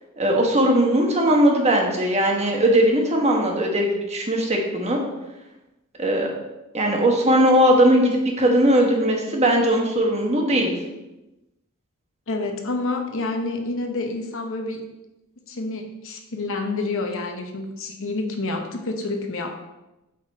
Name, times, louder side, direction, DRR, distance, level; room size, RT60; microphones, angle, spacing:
voice 1, 0.2-5.0 6.0-6.3 6.7-10.7, right 1 dB, 30° right, 0 dB, 1.3 m, -19 dB
voice 2, 12.3-14.8 15.5-19.6, left 2 dB, 65° left, 4 dB, 0.9 m, -28 dB
8.9 x 4.2 x 4.1 m, 0.98 s
head